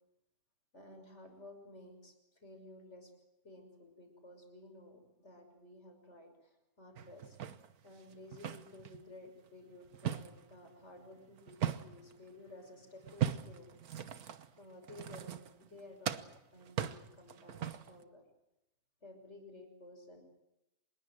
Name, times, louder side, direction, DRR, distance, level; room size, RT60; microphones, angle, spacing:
voice 1, 0.7-3.1 3.4-7.4 7.8-13.8 14.6-16.2 16.5-18.2 19.0-20.2, left 2 dB, 50° left, 5 dB, 6.2 m, -54 dB
sound 1, 7.0-9.0 9.5-12.2 13.0-15.8 16.0-18.0, right 9 dB, 90° right, 1.6 m, -39 dB
26.0 x 21.5 x 7.6 m, 0.91 s
omnidirectional pair, 1.5 m